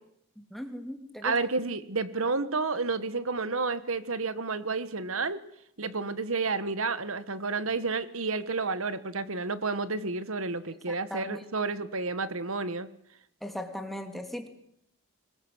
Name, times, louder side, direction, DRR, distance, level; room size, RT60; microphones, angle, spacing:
voice 1, 0.4-1.3 6.0-6.1 10.9-11.4 13.4-14.5, equal, ahead, 5 dB, 2.9 m, -38 dB
voice 2, 1.2-5.4 5.8-12.9, right 3 dB, 70° right, 13 dB, 1.5 m, -30 dB
26.0 x 20.5 x 8.0 m, 0.74 s
head